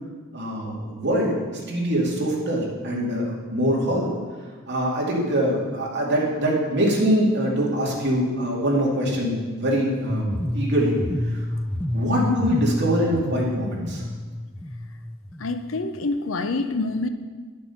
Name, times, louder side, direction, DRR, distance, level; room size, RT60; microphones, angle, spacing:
voice 1, 0.3-1.3 1.7-4.1 4.7-11.0 11.9-14.0, equal, 55° right, -3 dB, 2.5 m, -23 dB
sound 1, 10.1-16.1, left 1 dB, 5° left, 0.3 m, -29 dB
voice 2, 12.1-12.4 15.4-17.1, left 2 dB, 70° left, 9 dB, 0.7 m, -26 dB
11.0 x 6.9 x 5.8 m, 1.4 s
head